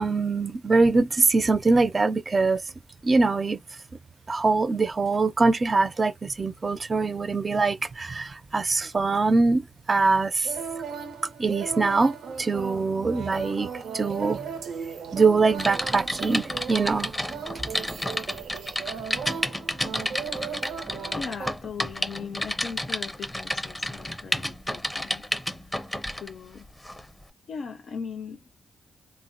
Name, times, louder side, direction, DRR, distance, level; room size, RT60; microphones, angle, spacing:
voice 1, 0.0-2.6 3.0-3.6 4.3-10.5 11.4-13.7 13.9-14.4 15.1-17.1, right 3 dB, 35° right, 0.4 m, -23 dB
sound 1, 10.4-21.5, right 6 dB, 85° right, 0.6 m, -37 dB
Typing, 15.6-26.3 26.8-27.0, left 1 dB, 10° left, 0.6 m, -31 dB
voice 2, 21.1-25.2 25.6-25.9 26.2-26.7 27.5-28.4, left 6 dB, 70° left, 0.4 m, -39 dB
3.4 x 2.0 x 2.5 m
cardioid pair, 80°, 0 cm